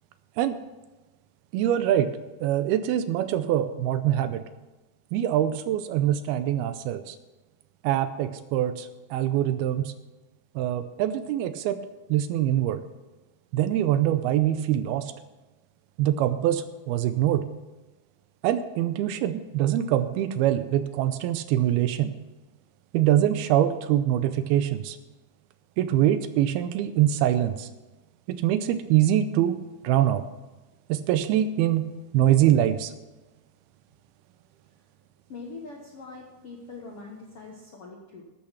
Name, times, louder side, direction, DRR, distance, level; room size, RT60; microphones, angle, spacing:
voice 1, 1.5-2.1 2.4-4.4 5.1-7.2 7.8-9.9 10.6-11.8 12.1-12.8 13.5-15.1 16.0-17.4 18.4-22.1 22.9-25.0 25.8-27.7 28.3-29.6 29.8-30.2 30.9-31.9 32.1-32.9, right 12 dB, 80° right, 12 dB, 2.4 m, -24 dB
voice 2, 35.3-38.2, left 3 dB, 65° left, -1 dB, 1.4 m, -42 dB
13.0 x 8.7 x 5.8 m, 1.1 s
omnidirectional pair, 4.6 m